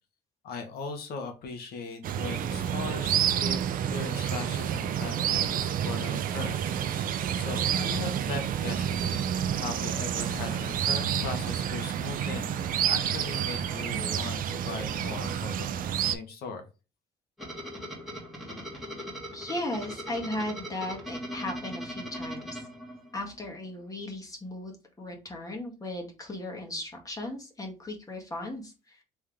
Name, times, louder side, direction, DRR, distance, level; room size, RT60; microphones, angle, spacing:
voice 1, 0.4-7.0 7.3-9.0 9.6-12.5 12.8-15.7 16.0-16.6, left 4 dB, 70° left, 5 dB, 1.3 m, -39 dB
sound 1, 2.0-16.2, right 9 dB, 55° right, 0.5 m, -29 dB
sound 2, 17.4-23.4, equal, ahead, 1.7 m, -39 dB
voice 2, 19.3-22.7 23.1-29.0, left 1 dB, 20° left, 1 dB, 1.5 m, -36 dB
3.5 x 3.5 x 3.4 m, 0.31 s
cardioid pair, 110°, 17 cm